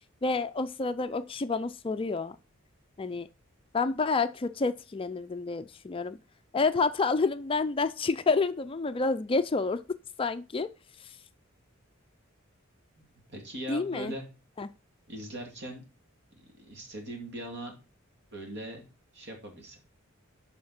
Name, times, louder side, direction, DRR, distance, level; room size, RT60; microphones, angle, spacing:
voice 1, 0.2-2.4 3.0-3.3 3.7-6.2 6.5-10.7 11.0-11.1 13.7-14.1 14.6-14.7, left 4 dB, 25° left, 0.4 m, -29 dB
voice 2, 13.3-14.2 15.1-15.8 16.3-17.8 18.3-18.8 19.1-19.8, right 1 dB, 55° right, 2.6 m, -40 dB
7.7 x 5.6 x 5.6 m
head